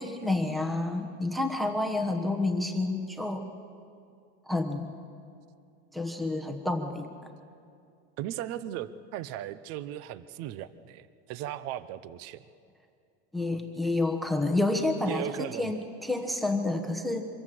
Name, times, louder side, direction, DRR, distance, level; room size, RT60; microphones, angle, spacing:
voice 1, 0.0-3.5 4.5-4.9 5.9-7.1 13.3-15.3 15.6-17.2, left 2 dB, ahead, 6 dB, 1.0 m, -29 dB
voice 2, 8.2-12.4 15.1-15.7, right 12 dB, 45° right, 15 dB, 0.7 m, -37 dB
24.5 x 14.5 x 7.6 m, 2.4 s
supercardioid pair, 155°, 32 cm